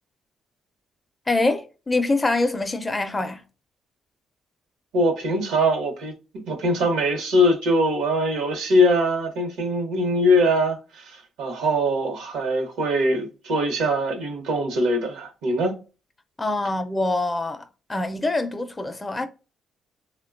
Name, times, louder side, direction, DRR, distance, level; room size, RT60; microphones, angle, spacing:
voice 1, 1.3-3.4 16.4-17.6 17.9-19.3, left 2 dB, 20° left, 0.4 m, -24 dB
voice 2, 4.9-6.1 6.4-15.8, equal, 85° right, 0.8 m, -22 dB
3.0 x 2.1 x 2.3 m
cardioid pair, 90°, 0 cm